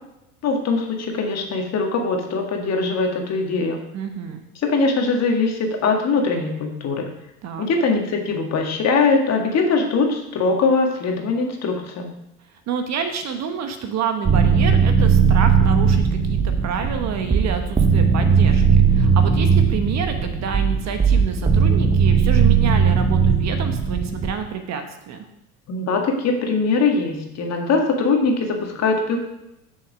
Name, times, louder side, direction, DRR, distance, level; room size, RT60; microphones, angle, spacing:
voice 1, 0.4-3.8 4.6-7.1 7.6-12.1 25.7-29.2, left 4 dB, 35° left, 2 dB, 1.8 m, -21 dB
voice 2, 3.9-4.4 7.4-7.7 12.7-25.3, right 7 dB, 35° right, 7 dB, 1.1 m, -28 dB
sound 1, 14.2-24.3, right 6 dB, 15° right, 0.9 m, -18 dB
6.9 x 6.4 x 5.1 m, 0.88 s
hypercardioid pair, 80°, 44 cm